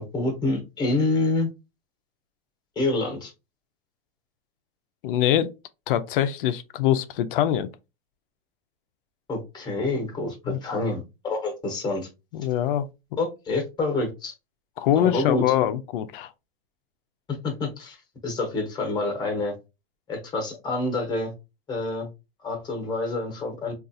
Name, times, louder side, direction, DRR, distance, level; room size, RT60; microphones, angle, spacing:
voice 1, 0.0-1.5 2.8-3.3 9.3-12.1 13.2-14.3 14.9-15.4 17.4-18.0 18.2-19.5 20.1-21.3 21.7-22.1 22.4-23.7, left 2 dB, 15° left, 0.9 m, -27 dB
voice 2, 5.0-5.5 5.9-7.7 10.5-10.6 12.3-12.9 14.8-16.3, left 11 dB, 60° left, 0.4 m, -23 dB
3.6 x 2.4 x 2.6 m
supercardioid pair, 155°, 30 cm